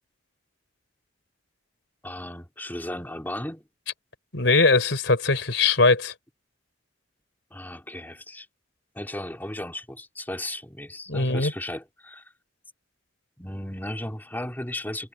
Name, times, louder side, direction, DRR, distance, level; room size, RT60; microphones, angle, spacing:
voice 1, 2.0-3.6 7.5-8.5 8.9-12.2 13.4-15.1, left 1 dB, 10° left, 2.9 m, -35 dB
voice 2, 4.3-6.1 11.1-11.5, left 3 dB, 75° left, 3.9 m, -21 dB
head